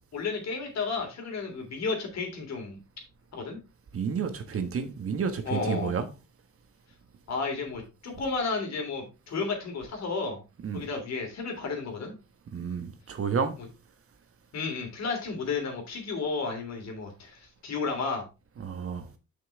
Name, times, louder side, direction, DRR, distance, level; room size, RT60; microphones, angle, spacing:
voice 1, 0.1-2.8 3.3-3.6 5.4-6.0 7.3-10.4 10.7-12.1 14.5-18.2, left 4 dB, 60° left, 3.2 m, -32 dB
voice 2, 3.9-6.1 10.6-10.9 12.5-13.5 18.6-19.1, right 6 dB, 50° right, 1.3 m, -30 dB
6.2 x 6.0 x 3.5 m
cardioid pair, 90°, 30 cm